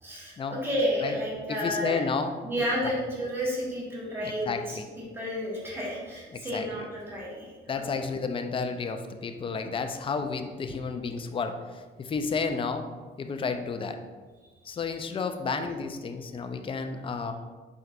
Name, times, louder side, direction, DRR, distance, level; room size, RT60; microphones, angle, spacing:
voice 1, 0.0-2.0 2.4-4.8 5.1-7.5 7.9-8.0 15.6-15.7, equal, 10° right, -6 dB, 1.5 m, -31 dB
voice 2, 1.5-2.9 4.2-4.8 6.3-6.7 7.7-12.9 13.2-14.0 14.6-17.3, left 5 dB, 25° left, 7 dB, 0.4 m, -32 dB
4.5 x 3.8 x 2.5 m, 1.4 s
cardioid pair, 90°, 20 cm